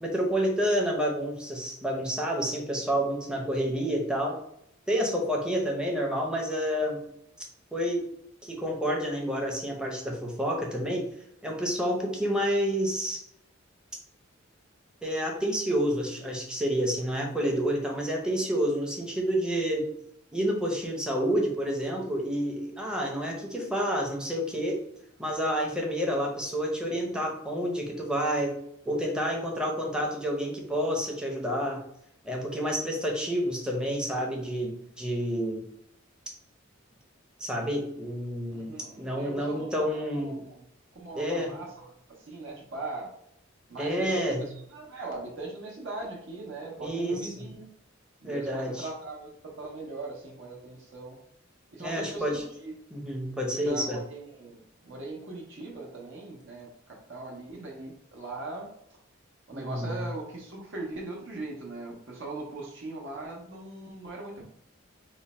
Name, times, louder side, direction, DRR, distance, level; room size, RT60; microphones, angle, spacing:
voice 1, 0.0-4.4 4.9-7.0 7.7-8.1 8.4-11.1 11.4-13.2 15.0-19.8 20.3-24.8 25.2-28.5 28.9-31.8 32.2-35.6 37.4-38.7 39.0-40.4 41.2-41.5 43.8-44.5 46.8-47.5 48.2-48.8 51.8-52.4 52.9-54.0 59.5-60.0, equal, 5° right, 0 dB, 0.6 m, -29 dB
voice 2, 38.5-39.7 40.1-40.6 40.9-43.1 43.7-47.7 48.2-51.2 51.7-52.7 53.5-58.7 59.5-64.4, right 2 dB, 65° right, -1 dB, 0.7 m, -40 dB
3.1 x 2.1 x 4.1 m, 0.74 s
head